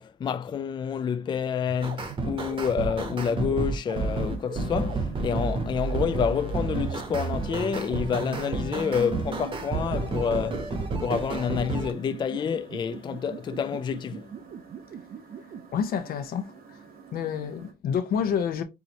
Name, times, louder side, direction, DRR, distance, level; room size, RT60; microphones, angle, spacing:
voice 1, 0.0-14.3, left 7 dB, 30° left, 0.3 m, -28 dB
sound 1, 1.7-15.6, right 8 dB, 55° right, 0.5 m, -40 dB
sound 2, 1.8-11.9, right 3 dB, 35° right, 0.9 m, -30 dB
sound 3, 3.9-17.7, right 5 dB, 85° right, 1.4 m, -50 dB
voice 2, 15.7-16.5 17.1-18.6, left 7 dB, 85° left, 0.8 m, -28 dB
4.7 x 4.0 x 2.8 m
wide cardioid pair, 155°, 15 cm